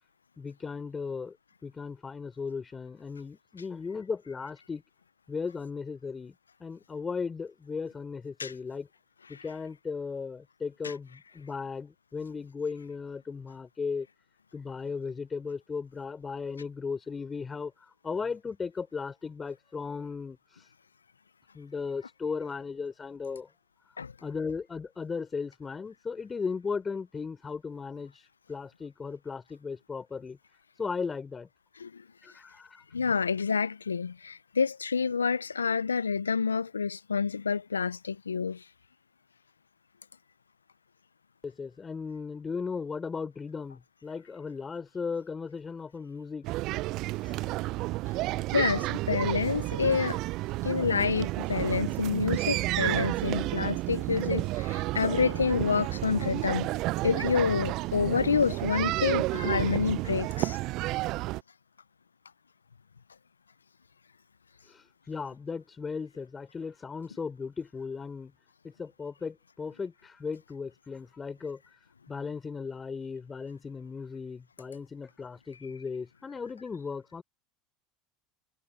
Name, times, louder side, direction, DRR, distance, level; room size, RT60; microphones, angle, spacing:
voice 1, 0.4-1.4 1.6-4.8 5.3-6.3 6.6-8.9 9.3-14.1 14.5-17.7 18.0-20.4 21.5-23.5 24.2-28.1 28.5-30.4 30.8-31.5 32.2-32.8 41.4-46.5 47.2-47.5 64.7-68.3 68.6-71.6 72.1-77.2, left 5 dB, 25° left, 5.5 m, -36 dB
voice 2, 32.9-38.7 48.5-50.2 50.6-56.7 57.0-60.6, left 5 dB, 90° left, 0.6 m, -28 dB
sound 1, 46.4-61.4, right 19 dB, 55° right, 0.6 m, -31 dB
hypercardioid pair, 75°, 0 cm